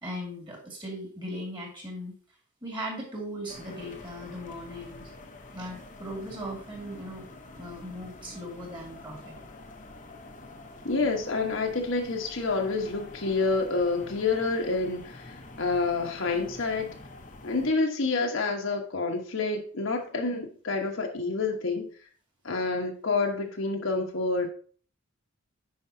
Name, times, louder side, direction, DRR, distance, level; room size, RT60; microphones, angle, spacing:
voice 1, 0.0-2.1 2.6-5.1 5.5-7.3 7.6-9.4, equal, 20° right, 2.1 m, -38 dB
sound 1, 3.5-17.7, left 2 dB, 35° left, 0.9 m, -47 dB
voice 2, 10.8-16.9 17.4-21.9 22.4-24.5, left 3 dB, 65° left, 1.1 m, -28 dB
9.6 x 5.3 x 2.7 m
head